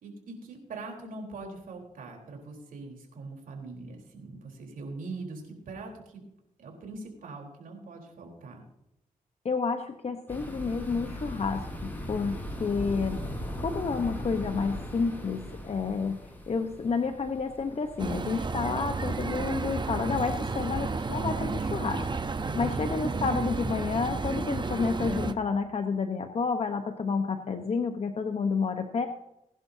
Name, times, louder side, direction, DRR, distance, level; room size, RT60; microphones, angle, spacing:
voice 1, 0.0-6.2 6.6-8.6 22.4-22.8, right 3 dB, 80° right, 1 dB, 4.1 m, -42 dB
voice 2, 9.4-13.2 13.6-16.2 16.5-22.0 22.6-29.1, left 5 dB, 50° left, 6 dB, 1.1 m, -30 dB
sound 1, 10.3-20.5, equal, 15° left, 4.8 m, -39 dB
sound 2, 18.0-25.3, right 4 dB, 35° right, 0.9 m, -32 dB
21.5 x 11.0 x 2.8 m, 0.85 s
cardioid pair, 80°, 14 cm